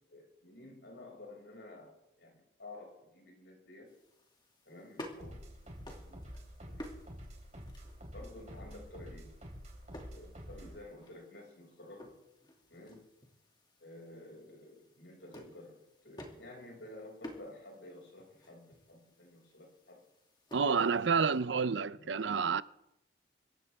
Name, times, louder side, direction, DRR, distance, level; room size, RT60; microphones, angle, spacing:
voice 1, 0.1-3.9 4.7-6.3 6.7-6.9 8.1-9.4 10.1-12.2 12.7-13.1 13.8-20.0 20.5-21.2 21.5-22.2, left 1 dB, 80° left, 6.1 m, -52 dB
sound 1, 3.9-21.4, equal, 25° left, 2.5 m, -54 dB
sound 2, 5.2-10.8, equal, 40° right, 3.9 m, -48 dB
voice 2, 20.5-22.6, right 5 dB, 80° right, 0.6 m, -29 dB
25.5 x 15.0 x 3.6 m
head